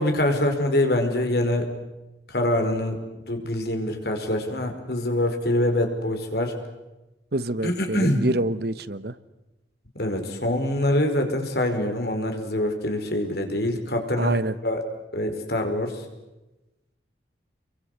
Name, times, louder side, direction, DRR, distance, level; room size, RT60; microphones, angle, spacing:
voice 1, 0.0-1.7 2.3-6.5 7.6-8.2 10.0-14.8 15.1-16.0, left 1 dB, 55° left, 5 dB, 5.2 m, -25 dB
voice 2, 7.3-9.1 14.2-14.5, right 2 dB, 55° right, 15 dB, 1.1 m, -26 dB
30.0 x 23.5 x 8.1 m, 1.0 s
head